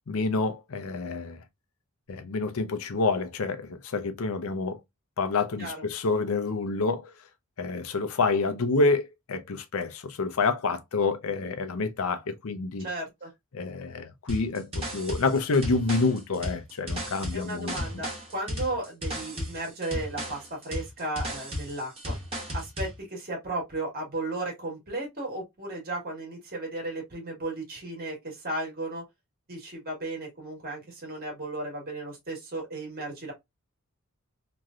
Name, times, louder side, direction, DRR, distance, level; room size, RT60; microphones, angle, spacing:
voice 1, 0.1-1.4 2.1-4.8 5.2-7.1 7.6-12.9 13.5-17.7, left 3 dB, 65° left, 0.6 m, -28 dB
voice 2, 12.8-13.3 17.3-22.2 22.5-29.0 29.5-33.3, right 2 dB, 40° right, 1.4 m, -35 dB
sound 1, 14.3-23.0, equal, 25° right, 1.2 m, -34 dB
3.0 x 2.6 x 2.4 m
head